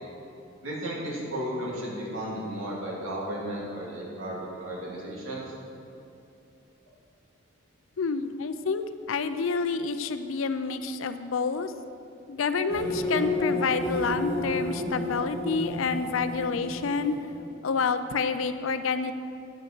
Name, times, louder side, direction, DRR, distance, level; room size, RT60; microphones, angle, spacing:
voice 1, 0.6-5.4, right 1 dB, 85° right, -4 dB, 2.5 m, -34 dB
voice 2, 8.0-11.7 12.3-17.2 17.6-19.1, left 5 dB, 80° left, 10 dB, 0.5 m, -28 dB
sound 1, 12.7-17.6, left 1 dB, 15° left, 2.0 m, -31 dB
8.8 x 7.0 x 6.1 m, 2.8 s
head